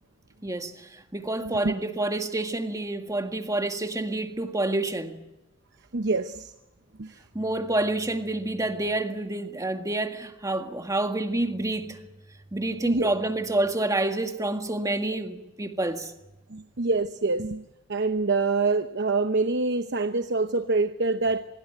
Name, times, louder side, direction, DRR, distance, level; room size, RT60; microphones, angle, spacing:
voice 1, 0.4-5.2 7.3-12.0 12.5-16.1, right 2 dB, 15° right, 1.9 m, -28 dB
voice 2, 5.9-6.5 7.0-7.2 12.8-13.1 16.5-17.6 17.9-21.5, right 3 dB, 60° right, 0.9 m, -25 dB
24.5 x 22.0 x 9.1 m
head